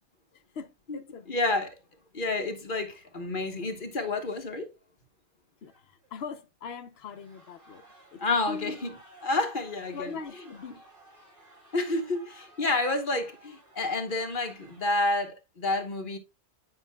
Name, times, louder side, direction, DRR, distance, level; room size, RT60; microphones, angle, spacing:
voice 1, 0.3-1.4 5.6-7.8 8.1-8.2 8.5-8.8 9.9-10.8, left 5 dB, 65° left, 1.0 m, -41 dB
voice 2, 1.3-1.8 2.1-4.7 8.2-9.0 9.2-10.2 11.7-16.2, left 2 dB, 50° left, 1.3 m, -29 dB
sound 1, 4.1-4.5 5.6-6.2 6.7-15.1, right 2 dB, 50° right, 3.3 m, -56 dB
9.3 x 5.7 x 2.2 m
omnidirectional pair, 1.2 m